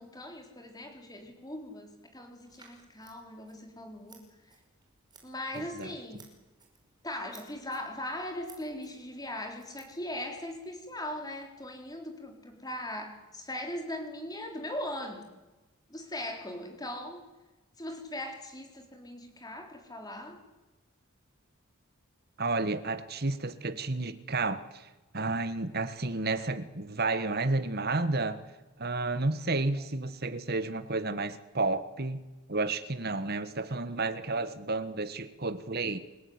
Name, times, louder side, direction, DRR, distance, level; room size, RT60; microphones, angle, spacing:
voice 1, 0.0-4.2 5.2-6.3 7.0-15.2 15.9-17.3 17.8-20.4, left 1 dB, 15° left, 4.0 m, -39 dB
Scissors, 2.5-10.5, right 5 dB, 20° right, 5.6 m, -60 dB
voice 2, 5.6-5.9 22.4-28.4 28.8-32.2 32.5-36.0, right 3 dB, 45° right, 1.4 m, -31 dB
28.5 x 16.5 x 9.6 m
head